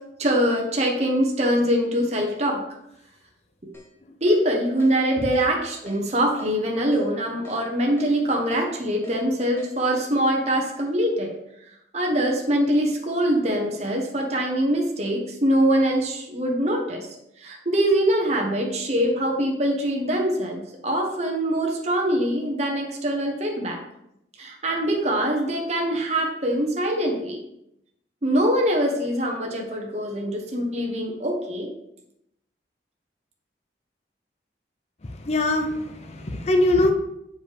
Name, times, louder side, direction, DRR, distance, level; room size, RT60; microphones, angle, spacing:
voice 1, 0.2-2.6 4.2-11.3 11.9-17.1 17.4-23.8 24.4-27.4 28.2-31.7, right 1 dB, 40° right, 0 dB, 0.9 m, -23 dB
Keyboard (musical), 3.7-3.9 4.3-4.4 4.8-4.9 5.3-5.5 5.9-6.0 6.4-6.5 6.9-7.0 7.4-7.6 8.0-8.1 8.5-8.6 9.0-9.2 9.6-9.7, left 1 dB, 15° left, 0.9 m, -45 dB
voice 2, 35.2-36.9, left 1 dB, 35° left, 4 dB, 0.6 m, -22 dB
7.0 x 5.0 x 3.4 m, 0.82 s
head